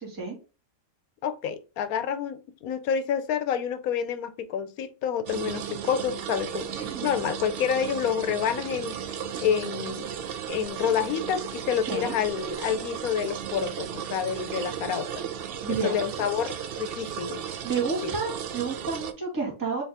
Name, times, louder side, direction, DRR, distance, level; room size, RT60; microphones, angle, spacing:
voice 1, 0.0-0.4 6.8-7.1 11.9-12.1 15.6-16.0 17.6-19.8, right 4 dB, 15° right, 1.6 m, -30 dB
voice 2, 1.2-9.0 9.4-10.1 10.5-15.3 15.8-17.4 18.0-18.1, left 8 dB, 80° left, 1.1 m, -28 dB
sound 1, 5.3-19.1, right 8 dB, 70° right, 0.5 m, -35 dB
4.2 x 3.5 x 3.4 m
omnidirectional pair, 1.5 m